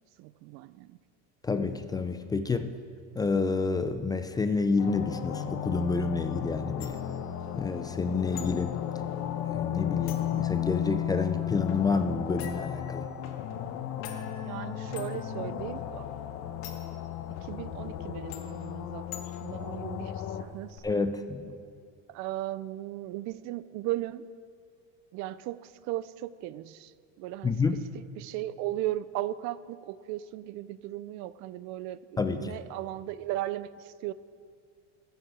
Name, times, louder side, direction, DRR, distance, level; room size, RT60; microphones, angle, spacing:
voice 1, 0.2-1.0 14.4-16.1 17.3-20.8 22.1-24.2 25.1-27.6 27.9-34.1, right 14 dB, 55° right, 17 dB, 0.5 m, -37 dB
voice 2, 1.4-2.7 3.1-7.0 7.5-8.8 9.4-13.1 20.8-21.6 27.4-27.8 32.2-32.6, left 4 dB, 10° left, 8 dB, 0.4 m, -29 dB
sound 1, 4.8-20.4, left 11 dB, 50° left, 0.9 m, -34 dB
sound 2, 6.8-20.8, left 8 dB, 85° left, 2.0 m, -50 dB
20.5 x 8.0 x 4.8 m, 2.2 s
cardioid pair, 135°, 33 cm